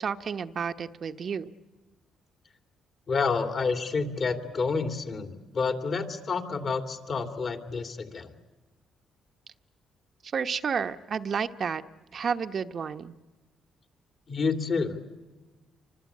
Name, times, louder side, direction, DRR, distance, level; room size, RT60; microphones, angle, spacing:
voice 1, 0.0-1.5 10.2-11.8 12.1-13.1, right 6 dB, 50° right, 8 dB, 1.0 m, -31 dB
voice 2, 3.1-8.3 14.3-15.1, left 4 dB, 50° left, 6 dB, 3.0 m, -29 dB
28.0 x 25.0 x 8.5 m, 1.2 s
cardioid pair, 90°, 0 cm